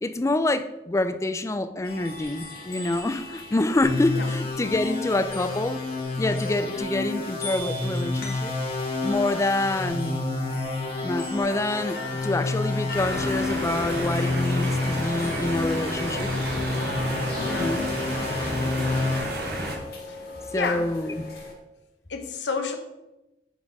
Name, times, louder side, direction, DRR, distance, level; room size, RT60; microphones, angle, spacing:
voice 1, 0.0-5.8 6.2-8.5 9.0-10.2 11.0-16.3 17.5-18.1 20.5-21.2, left 2 dB, 15° left, 11 dB, 0.4 m, -27 dB
sound 1, 1.8-21.5, left 2 dB, 60° left, 1.7 m, -40 dB
sound 2, 3.8-19.2, left 3 dB, 35° left, 2.1 m, -29 dB
sound 3, 12.9-19.8, right 1 dB, 60° right, 1.4 m, -31 dB
voice 2, 17.4-17.7 20.1-20.2 20.5-20.8 22.1-22.8, left 4 dB, 90° left, 5 dB, 1.0 m, -30 dB
8.1 x 4.3 x 4.8 m, 0.97 s
head